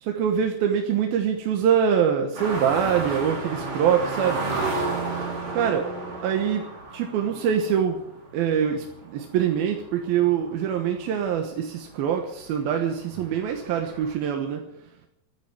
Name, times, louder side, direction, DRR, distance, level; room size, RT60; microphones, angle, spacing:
voice 1, 0.0-4.4 5.5-5.9 6.2-6.6 6.9-8.0 8.3-14.6, right 8 dB, 70° right, 4 dB, 2.7 m, -24 dB
sound 1, 2.3-11.5 11.9-12.0 12.4-14.1, right 3 dB, 35° right, 3.0 m, -32 dB
14.5 x 9.0 x 9.6 m, 0.78 s
omnidirectional pair, 5.1 m